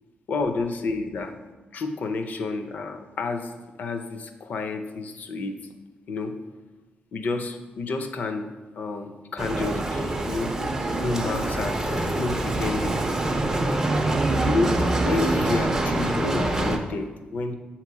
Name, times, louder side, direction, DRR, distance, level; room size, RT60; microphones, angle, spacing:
voice 1, 0.3-1.4 1.7-3.5 3.8-5.6 6.1-6.3 7.1-10.5 11.0-13.0 14.4-17.5, left 3 dB, 55° left, 7 dB, 0.5 m, -30 dB
Bicycle, 9.4-16.8, right 2 dB, 15° right, 0.4 m, -25 dB
7.4 x 3.0 x 4.7 m, 1.2 s
wide cardioid pair, 170°, 3 cm